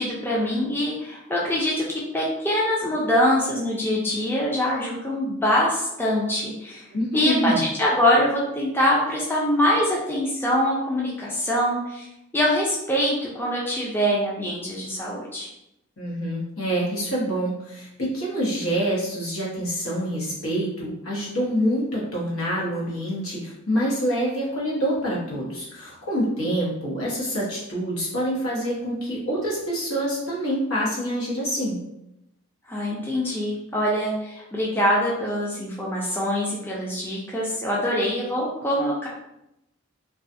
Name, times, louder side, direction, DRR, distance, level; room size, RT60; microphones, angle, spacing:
voice 1, 0.0-1.8 2.1-6.8 7.1-12.1 12.3-15.5 32.7-39.1, equal, 10° left, -4 dB, 0.3 m, -24 dB
voice 2, 6.9-7.6 16.0-31.8, equal, 80° left, -5 dB, 0.9 m, -26 dB
2.4 x 2.3 x 2.6 m, 0.86 s
head